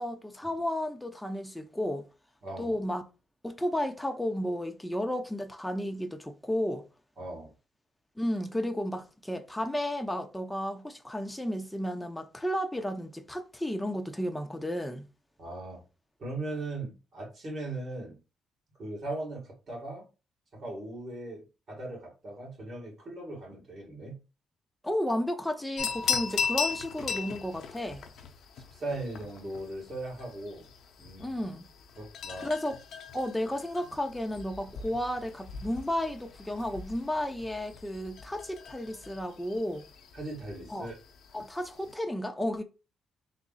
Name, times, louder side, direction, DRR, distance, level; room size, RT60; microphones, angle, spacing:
voice 1, 0.0-2.1 2.6-3.0 3.4-6.8 8.2-15.0 24.8-28.0 31.2-31.6 32.4-32.8 33.1-39.9 40.7-40.9 41.3-42.6, left 1 dB, 5° left, 0.6 m, -33 dB
voice 2, 2.4-2.7 7.2-7.5 15.4-15.8 16.2-18.2 18.8-20.1 20.5-24.2 28.6-30.7 31.0-31.4 32.0-32.5 40.1-41.0, right 2 dB, 50° right, 2.1 m, -39 dB
sound 1, 25.8-41.9, left 6 dB, 70° left, 0.6 m, -38 dB
3.6 x 2.0 x 4.0 m
cardioid pair, 90°, 0 cm